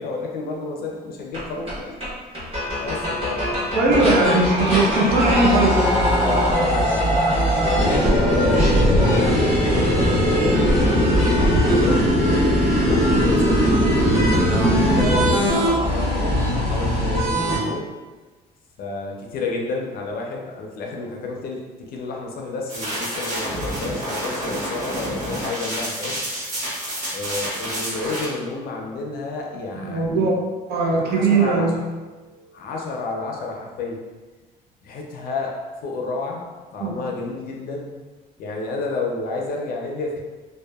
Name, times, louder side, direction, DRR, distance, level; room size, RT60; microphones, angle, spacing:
voice 1, 0.0-2.0 2.4-2.5 2.8-3.6 6.2-13.7 14.4-17.9 18.8-26.2 27.1-30.3 31.1-31.7 32.1-34.0 34.8-36.4 36.7-37.9 38.4-40.2, left 3 dB, 60° left, 0 dB, 0.5 m, -30 dB
sound 1, 1.3-1.4 1.7-1.8 2.0-2.1 2.3-17.6, equal, 35° right, 1.2 m, -21 dB
voice 2, 3.7-5.8 29.8-30.3 30.7-31.8 36.8-37.0, right 3 dB, 75° right, -2 dB, 0.6 m, -19 dB
sound 2, 7.7-15.3, left 1 dB, 5° left, 0.6 m, -21 dB
sound 3, 22.7-28.2, right 1 dB, 50° right, 1.4 m, -29 dB
2.7 x 2.1 x 2.2 m, 1.3 s
cardioid pair, 110°, 17 cm